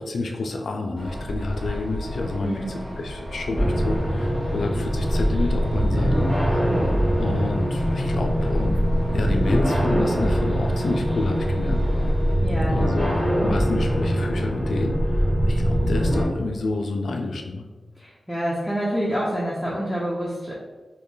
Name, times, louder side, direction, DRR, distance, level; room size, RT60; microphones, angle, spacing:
voice 1, 0.0-6.7 7.1-8.7 9.1-11.8 12.7-17.7, left 3 dB, 85° left, 3 dB, 0.4 m, -29 dB
sound 1, 1.0-12.3, equal, 50° right, 0.6 m, -34 dB
voice 2, 2.4-2.8 12.4-12.7 18.0-20.5, equal, 10° left, -6 dB, 0.6 m, -27 dB
sound 2, 3.5-16.2, equal, 10° right, 1.4 m, -22 dB
3.1 x 2.3 x 3.8 m, 1.3 s
wide cardioid pair, 100°, 0 cm